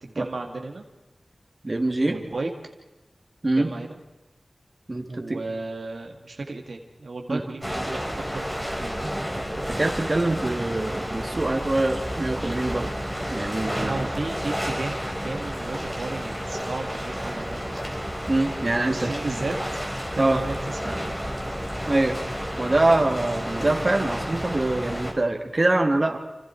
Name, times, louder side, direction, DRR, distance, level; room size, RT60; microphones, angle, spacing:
voice 1, 0.0-0.8 2.1-2.5 3.6-4.0 5.1-9.1 13.8-15.0 15.2-18.0 18.6-19.8 20.1-21.2, right 3 dB, 80° right, 2 dB, 2.3 m, -34 dB
voice 2, 1.6-2.2 3.4-3.7 4.9-5.4 7.3-7.4 9.0-9.1 9.7-12.9 13.3-14.1 18.3-19.2 20.2-20.4 21.9-22.2 22.6-26.2, right 2 dB, 40° right, 3 dB, 3.1 m, -24 dB
sound 1, 7.6-25.1, equal, 10° left, 4.8 m, -31 dB
29.0 x 26.5 x 4.6 m, 1.1 s
wide cardioid pair, 65°, 0 cm